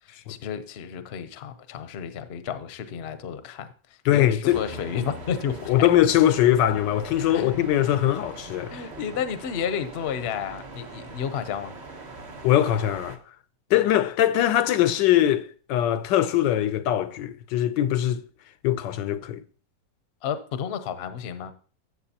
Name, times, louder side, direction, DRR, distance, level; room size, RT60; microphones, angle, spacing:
voice 1, 0.1-3.7 4.1-5.9 7.3-7.6 8.7-11.7 20.2-21.5, left 8 dB, 50° left, 0.7 m, -31 dB
voice 2, 4.0-4.6 5.7-8.8 12.4-13.2 13.7-18.2 18.6-19.4, left 12 dB, 90° left, 1.3 m, -22 dB
sound 1, 4.5-13.2, right 2 dB, 30° right, 0.8 m, -41 dB
13.0 x 7.7 x 2.8 m
omnidirectional pair, 1.9 m